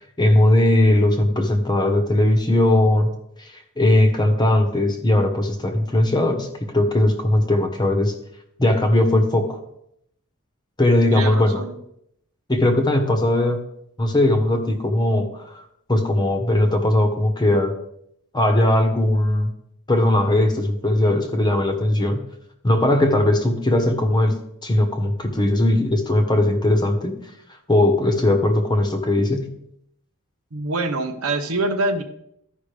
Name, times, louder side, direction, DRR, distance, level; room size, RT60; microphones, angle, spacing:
voice 1, 0.2-3.1 3.4-3.5 3.8-6.5 6.7-8.1 8.6-9.6 10.8-11.6 12.5-13.6 14.0-15.6 15.9-17.7 18.3-19.5 19.9-22.2 22.6-24.4 24.6-27.2 27.7-29.5, left 1 dB, 20° left, 5 dB, 1.0 m, -19 dB
voice 2, 11.1-11.7 30.5-32.0, right 2 dB, 75° right, 7 dB, 0.9 m, -25 dB
13.5 x 5.3 x 3.4 m, 0.76 s
head